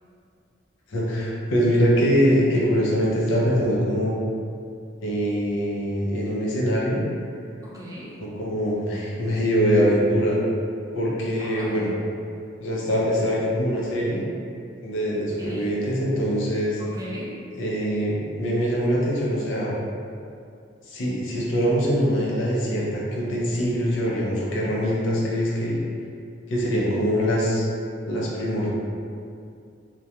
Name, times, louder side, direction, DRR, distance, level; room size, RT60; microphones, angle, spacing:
voice 1, 0.9-4.1 5.0-7.0 8.2-10.4 10.9-11.9 12.6-14.2 14.8-16.8 17.6-19.7 20.9-25.8 26.5-27.7 28.1-28.7, equal, 85° left, -5 dB, 0.6 m, -23 dB
voice 2, 7.6-8.1 11.4-11.9 15.4-15.7 16.8-17.4, equal, 20° right, -6 dB, 0.4 m, -37 dB
2.3 x 2.2 x 2.8 m, 2.4 s
head